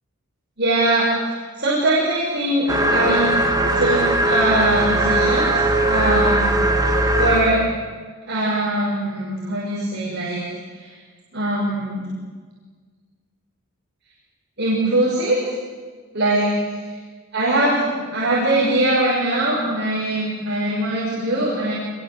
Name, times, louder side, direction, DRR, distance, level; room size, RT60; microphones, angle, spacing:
voice 1, 0.6-3.3 3.7-6.5 6.8-6.9 7.2-7.6 8.3-10.4 10.8-10.9 11.3-12.1 14.6-15.4 16.1-16.5 17.3-21.7, right 1 dB, 55° right, -6 dB, 6.2 m, -21 dB
sound 1, 2.7-7.6, right 1 dB, 15° right, 2.3 m, -19 dB
26.0 x 22.0 x 8.0 m, 1.5 s
head